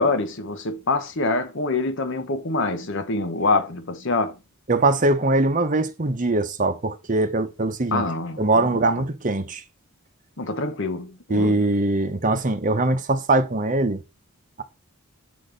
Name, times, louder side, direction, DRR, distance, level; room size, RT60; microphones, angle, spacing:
voice 1, 0.0-4.4 7.9-8.7 10.4-11.6, left 3 dB, 60° left, 1.1 m, -25 dB
voice 2, 4.7-8.0 8.4-9.6 11.3-14.0, right 2 dB, 35° right, 0.9 m, -22 dB
7.3 x 4.2 x 5.1 m
head